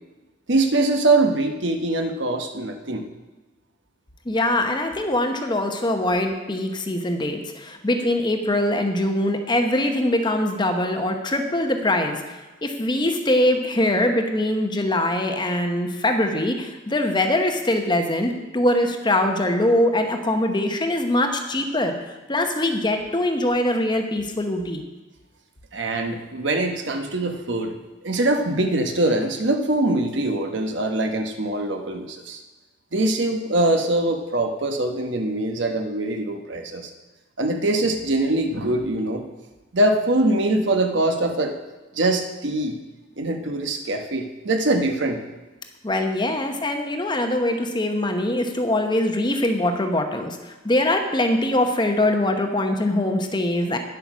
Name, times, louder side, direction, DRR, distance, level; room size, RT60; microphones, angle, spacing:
voice 1, 0.5-3.0 25.7-27.8 28.0-32.4 32.9-36.9 37.4-39.2 39.7-41.5 41.9-42.8 43.2-45.2, right 2 dB, 60° right, 5 dB, 1.1 m, -23 dB
voice 2, 4.2-21.9 22.3-24.8 45.8-53.8, left 1 dB, 25° left, 5 dB, 0.9 m, -22 dB
9.9 x 8.1 x 6.2 m, 1.1 s
head